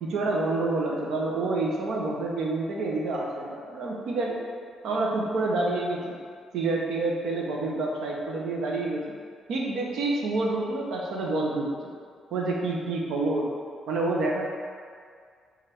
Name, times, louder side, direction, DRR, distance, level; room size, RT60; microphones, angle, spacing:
voice 1, 0.0-4.4 4.8-6.1 6.5-9.0 9.5-11.7 12.3-13.5 13.9-14.5, right 2 dB, 80° right, -2 dB, 0.7 m, -28 dB
5.5 x 2.5 x 3.4 m, 2.1 s
cardioid pair, 90°, 0 cm